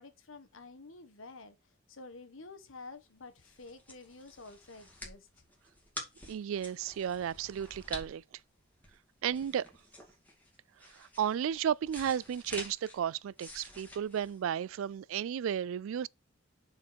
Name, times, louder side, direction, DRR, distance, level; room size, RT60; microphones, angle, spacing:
voice 1, 0.0-1.6 1.9-5.3, left 3 dB, 85° left, 1.3 m, -50 dB
sound 1, 3.1-15.0, left 1 dB, 10° left, 2.3 m, -49 dB
voice 2, 6.3-8.2 9.2-9.7 11.0-16.1, right 9 dB, 85° right, 0.3 m, -33 dB
7.2 x 4.6 x 4.5 m
head